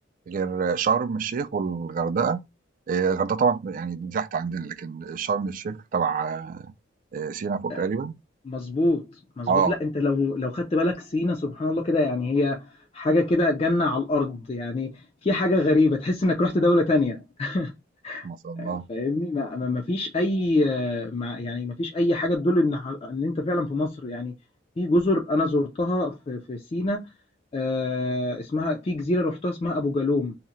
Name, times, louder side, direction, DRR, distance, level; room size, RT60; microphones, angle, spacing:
voice 1, 0.3-2.4 2.9-6.7 7.1-8.1 9.5-9.7 18.2-18.9, right 5 dB, 45° right, 0.3 m, -26 dB
voice 2, 8.5-17.7 18.0-18.3 18.6-24.3 24.8-27.0 27.5-30.3, left 2 dB, 30° left, 0.4 m, -25 dB
2.8 x 2.1 x 3.7 m
head